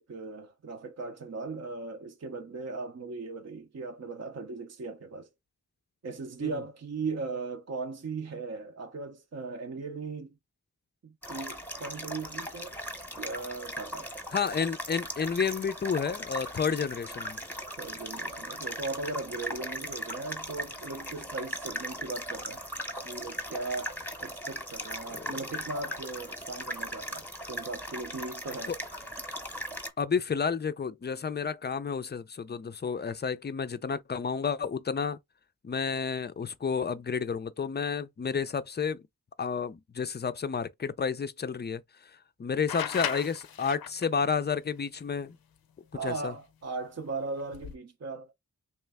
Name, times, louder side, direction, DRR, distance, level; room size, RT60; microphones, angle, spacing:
voice 1, 0.0-5.3 6.0-10.3 11.0-12.8 13.1-14.1 17.8-22.6 23.0-28.8 45.9-48.3, right 3 dB, 45° right, 0.6 m, -38 dB
sound 1, 11.2-29.9, equal, 5° left, 0.9 m, -38 dB
voice 2, 14.3-17.4 25.1-25.4 30.0-35.2 35.6-39.0 39.4-45.4 46.0-46.3, left 6 dB, 30° left, 0.4 m, -31 dB
sound 2, 42.7-44.2 46.1-46.2 47.4-47.8, left 9 dB, 85° left, 0.5 m, -35 dB
3.2 x 3.0 x 3.4 m
wide cardioid pair, 75°, 35 cm